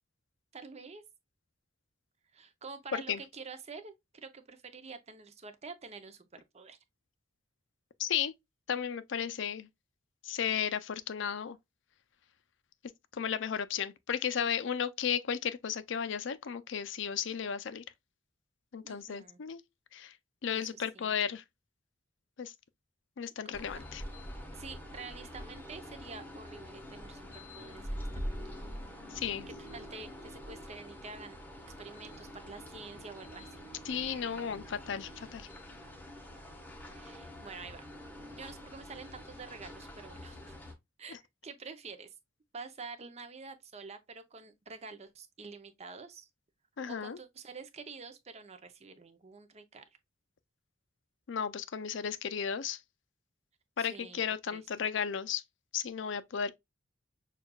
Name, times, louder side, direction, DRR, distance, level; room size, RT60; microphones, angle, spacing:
voice 1, 0.5-1.0 2.3-6.8 18.8-19.4 20.5-21.1 24.5-28.4 28.9-29.0 29.6-31.4 31.8-33.7 36.9-37.9 38.3-40.4 41.0-42.1 42.5-46.3 46.9-49.8 53.8-54.2 54.5-54.6, right 4 dB, 35° right, 0.6 m, -48 dB
voice 2, 8.0-8.3 8.7-9.7 10.2-11.6 13.1-17.8 18.7-19.6 19.9-20.1 20.4-21.4 22.4-22.5 23.2-24.0 29.1-29.5 33.9-35.5 41.1-41.2 46.8-47.2 51.3-52.8 53.8-55.4 55.7-56.5, left 8 dB, 65° left, 0.5 m, -34 dB
sound 1, 23.5-40.7, equal, 10° left, 0.9 m, -45 dB
6.3 x 2.4 x 2.3 m
head